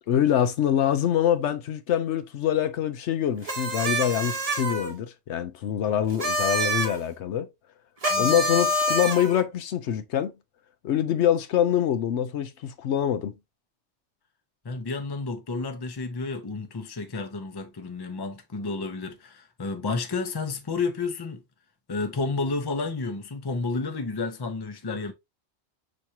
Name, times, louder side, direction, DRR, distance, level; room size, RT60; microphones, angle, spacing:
voice 1, 0.1-7.5 8.1-10.3 10.8-13.3, left 10 dB, 85° left, 1.0 m, -25 dB
sound 1, 3.4-4.9 6.1-7.0 8.0-9.4, equal, 35° right, 1.0 m, -26 dB
voice 2, 8.1-8.5 14.6-21.4 21.9-25.1, left 3 dB, 25° left, 0.6 m, -31 dB
5.9 x 3.2 x 2.7 m
omnidirectional pair, 1.1 m